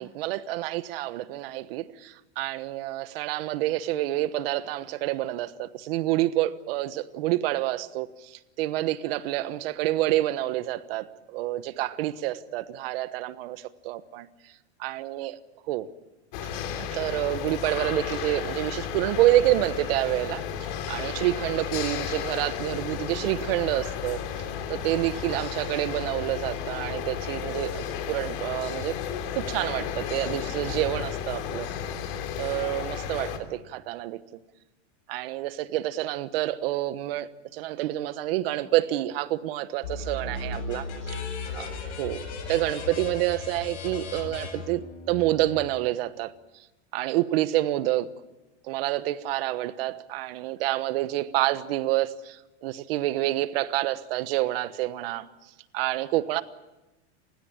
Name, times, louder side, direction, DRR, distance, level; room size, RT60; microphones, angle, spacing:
voice 1, 0.0-14.3 14.8-15.4 15.7-15.8 16.8-24.4 24.7-28.9 29.3-31.7 32.4-34.2 35.1-41.2 41.5-41.7 42.0-46.3 46.9-48.1 48.6-55.3 55.7-56.4, right 15 dB, 55° right, 1.2 m, -28 dB
sound 1, 16.3-33.4, left 8 dB, 50° left, 3.1 m, -33 dB
sound 2, 39.8-45.4, left 3 dB, 85° left, 7.9 m, -36 dB
Bass guitar, 40.2-44.0, left 6 dB, 70° left, 5.5 m, -48 dB
29.0 x 16.0 x 8.8 m
supercardioid pair, 160°, 34 cm